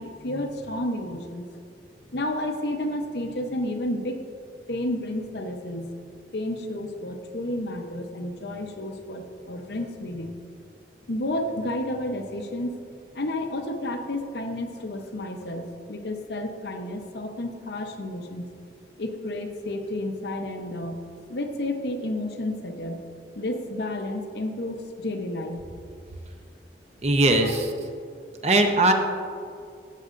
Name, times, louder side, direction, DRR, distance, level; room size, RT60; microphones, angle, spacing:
voice 1, 0.0-1.5 2.1-4.2 4.7-5.9 6.3-10.4 11.1-12.8 13.1-18.5 19.0-21.0 21.3-23.0 23.4-25.6 27.4-27.5, left 1 dB, 70° left, 5 dB, 0.8 m, -31 dB
voice 2, 27.0-27.7 28.4-28.9, right 2 dB, 35° right, 4 dB, 0.7 m, -20 dB
14.0 x 7.7 x 2.6 m, 2.4 s
head